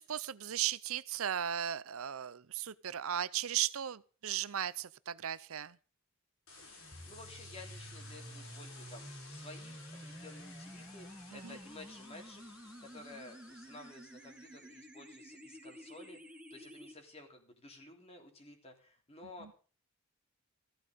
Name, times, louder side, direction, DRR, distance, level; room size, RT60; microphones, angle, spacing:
voice 1, 0.0-5.8 11.4-11.6, right 10 dB, 75° right, 0.6 m, -36 dB
sound 1, 6.5-14.7, left 3 dB, 65° left, 7.7 m, -55 dB
sound 2, 6.9-16.9, equal, 5° right, 1.8 m, -51 dB
voice 2, 7.1-12.4 12.8-19.5, left 2 dB, 25° left, 3.2 m, -53 dB
15.0 x 12.0 x 5.1 m
head